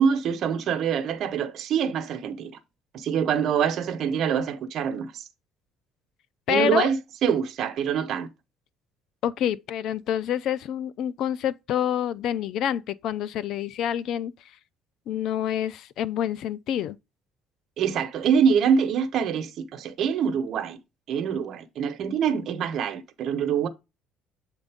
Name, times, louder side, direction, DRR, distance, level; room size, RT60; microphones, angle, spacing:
voice 1, 0.0-2.5 2.9-5.2 6.5-8.3 17.8-20.8 21.1-23.7, right 7 dB, 55° right, 1.0 m, -25 dB
voice 2, 6.5-6.9 9.2-14.3 15.1-17.0, left 10 dB, 65° left, 0.4 m, -27 dB
8.0 x 3.8 x 3.5 m
cardioid pair, 125°, 0 cm